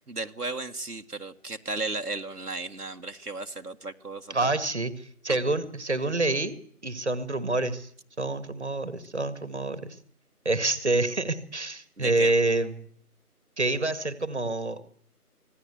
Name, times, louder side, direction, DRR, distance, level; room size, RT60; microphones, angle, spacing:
voice 1, 0.1-4.5 12.0-12.3, right 3 dB, 80° right, 5 dB, 1.8 m, -35 dB
voice 2, 4.3-6.5 6.8-7.9 8.2-10.0 10.5-12.9 13.6-14.8, right 2 dB, 45° right, 12 dB, 1.8 m, -27 dB
25.5 x 18.0 x 8.2 m, 0.64 s
figure-of-eight pair, 175°, 46 cm